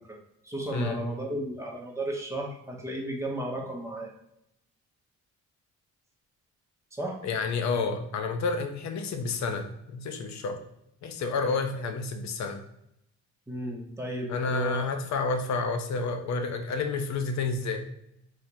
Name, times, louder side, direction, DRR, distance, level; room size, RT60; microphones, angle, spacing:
voice 1, 0.4-4.1 6.9-7.2 13.5-14.8, right 1 dB, 10° right, 0 dB, 0.9 m, -34 dB
voice 2, 7.2-10.6 11.0-12.6 14.3-17.8, left 4 dB, 65° left, 6 dB, 0.7 m, -30 dB
4.0 x 3.0 x 2.6 m, 0.79 s
cardioid pair, 90°, 30 cm